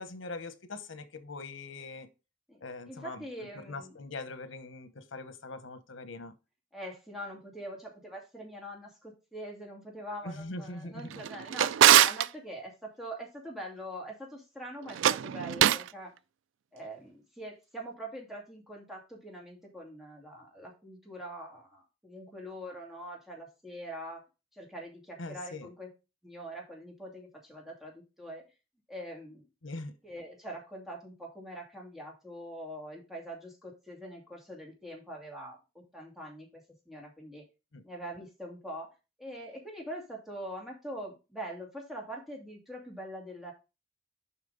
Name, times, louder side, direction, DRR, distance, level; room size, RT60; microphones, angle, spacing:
voice 1, 0.0-2.1 2.6-6.3 10.2-11.1 25.2-25.7 29.6-29.9 37.7-37.8, left 2 dB, 85° left, 1.0 m, -42 dB
voice 2, 2.9-4.0 6.7-16.1 16.7-24.2 24.5-25.9 26.2-28.4 28.9-29.4 30.0-37.4 37.8-38.9 39.2-43.5, equal, ahead, 2.5 m, -43 dB
Drawer open or close, 11.1-12.3 14.9-15.9, right 11 dB, 70° right, 0.3 m, -23 dB
7.2 x 5.6 x 3.9 m
head